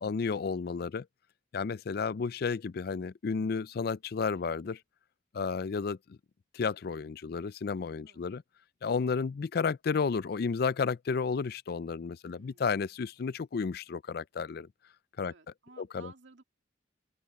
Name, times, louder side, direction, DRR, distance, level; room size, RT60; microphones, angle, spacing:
voice 1, 0.0-1.1 1.5-4.8 5.3-6.2 6.5-8.4 8.8-14.7 15.2-15.3 15.8-16.1, left 5 dB, 55° left, 0.4 m, -32 dB
voice 2, 12.3-12.7 15.3-16.4, right 4 dB, 70° right, 2.5 m, -55 dB
open air
head